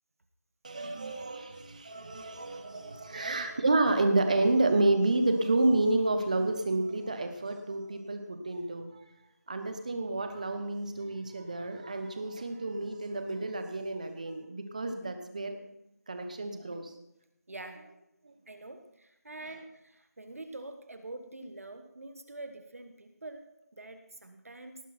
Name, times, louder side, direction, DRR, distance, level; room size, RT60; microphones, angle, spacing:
voice 1, 0.6-9.0 9.5-15.6 16.1-16.9 18.2-18.3, right 2 dB, 25° right, 7 dB, 1.1 m, -29 dB
voice 2, 3.1-3.4 17.5-17.8 18.5-23.4 23.8-24.8, right 2 dB, 55° right, 7 dB, 1.3 m, -45 dB
18.0 x 10.0 x 4.4 m, 0.82 s
figure-of-eight pair, 175°, 9 cm